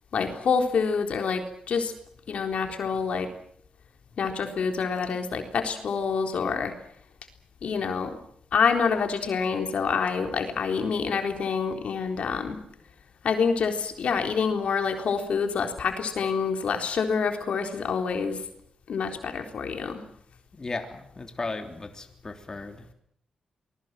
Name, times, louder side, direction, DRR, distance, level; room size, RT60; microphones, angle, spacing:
voice 1, 0.1-1.9 2.3-3.3 4.2-6.7 7.6-8.2 8.5-12.6 13.2-18.4 18.9-20.0, left 5 dB, 65° left, 5 dB, 3.9 m, -27 dB
voice 2, 20.6-22.9, left 3 dB, 30° left, 4 dB, 3.3 m, -36 dB
25.0 x 20.5 x 7.6 m, 0.68 s
cardioid pair, 105°, 2 cm